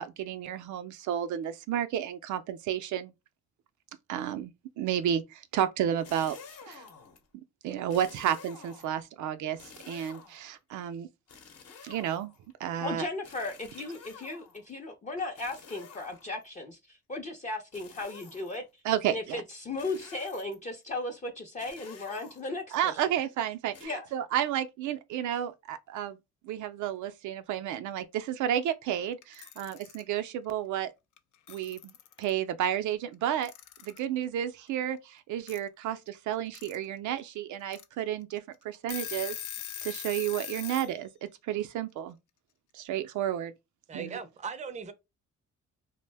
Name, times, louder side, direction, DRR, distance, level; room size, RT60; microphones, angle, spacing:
voice 1, 0.0-3.1 4.1-6.4 6.7-6.9 7.6-9.6 9.9-11.1 11.8-12.3 12.6-13.1 18.8-19.2 22.7-26.2 26.4-30.9 31.5-31.9 32.2-33.5 33.8-39.4 39.8-42.2 42.7-43.5 43.9-44.2, right 10 dB, 75° right, 0.5 m, -31 dB
sound 1, 5.9-7.2 7.9-9.1 9.6-10.5 11.3-12.5 13.2-14.7 15.4-16.5 17.7-18.6 19.8-20.7 21.6-22.8 23.7-23.9, left 5 dB, 55° left, 0.8 m, -51 dB
voice 2, 12.8-18.6 19.1-22.9 23.8-24.1, left 2 dB, 25° left, 0.5 m, -36 dB
Alarm / Clock, 29.2-30.0 31.2-31.3 31.5-32.3 33.4-34.0 35.5-35.6 36.3-36.8 37.2-37.3 37.7-37.8 38.4-38.5 38.7-40.9, left 11 dB, 75° left, 0.5 m, -40 dB
voice 3, 43.9-44.9, right 5 dB, 25° right, 0.5 m, -38 dB
2.5 x 2.1 x 3.3 m
cardioid pair, 90°, 30 cm